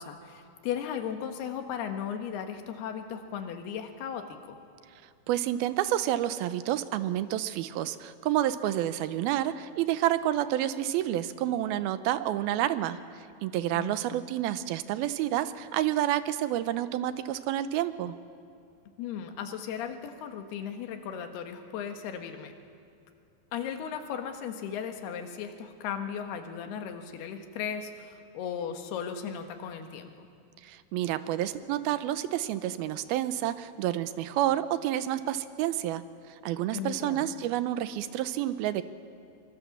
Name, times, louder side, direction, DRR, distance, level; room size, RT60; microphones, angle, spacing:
voice 1, 0.0-4.6 13.7-14.2 19.0-22.5 23.5-30.3 36.7-37.3, left 8 dB, 90° left, 6 dB, 3.5 m, -36 dB
voice 2, 5.3-18.2 30.6-38.8, right 12 dB, 80° right, 13 dB, 2.6 m, -29 dB
24.0 x 24.0 x 7.2 m, 2.4 s
omnidirectional pair, 4.4 m